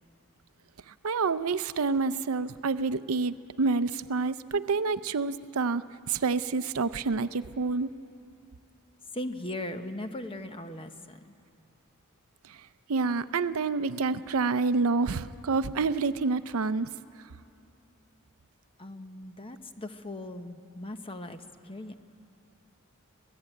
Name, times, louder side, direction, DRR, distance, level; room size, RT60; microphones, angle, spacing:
voice 1, 1.0-7.9 12.9-16.9, right 4 dB, 75° right, 14 dB, 0.6 m, -28 dB
voice 2, 9.1-11.3 18.8-21.9, left 1 dB, 25° left, 8 dB, 0.9 m, -39 dB
26.0 x 17.5 x 9.1 m, 2.7 s
head